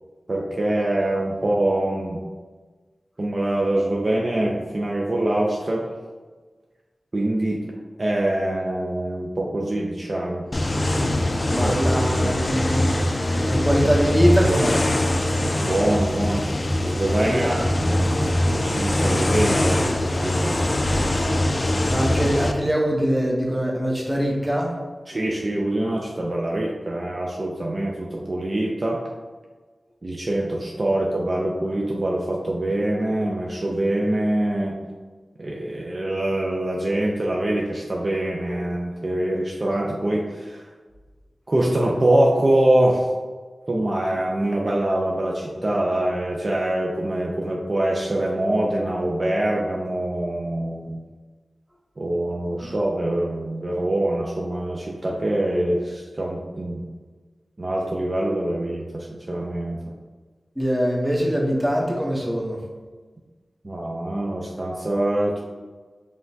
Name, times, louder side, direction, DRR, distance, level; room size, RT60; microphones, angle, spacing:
voice 1, 0.3-2.2 3.2-5.8 7.1-7.6 8.0-10.5 11.6-11.7 12.2-12.3 15.6-16.5 16.8-20.6 25.1-29.0 30.0-34.8 35.4-40.6 41.5-43.1 43.7-51.0 52.0-56.8 57.6-59.9 63.6-65.4, right 1 dB, 45° right, -2 dB, 0.5 m, -24 dB
sound 1, 10.5-22.5, left 1 dB, 35° left, 0.4 m, -22 dB
voice 2, 11.5-12.9 13.5-14.8 17.3-17.6 21.9-24.8 52.6-52.7 60.6-62.6, equal, 10° right, -1 dB, 0.9 m, -23 dB
4.9 x 3.4 x 2.7 m, 1.4 s
wide cardioid pair, 65°, 0 cm